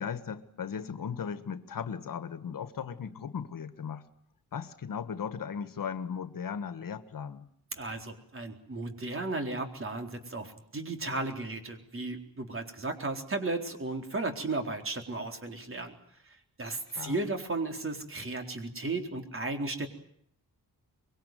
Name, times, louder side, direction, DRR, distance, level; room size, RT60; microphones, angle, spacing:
voice 1, 0.0-4.1 4.5-7.5 16.9-17.2, left 7 dB, 65° left, 12 dB, 1.7 m, -37 dB
voice 2, 7.8-15.9 16.3-19.9, right 2 dB, 35° right, 5 dB, 4.1 m, -35 dB
24.5 x 23.0 x 9.3 m, 0.65 s
wide cardioid pair, 135°, 36 cm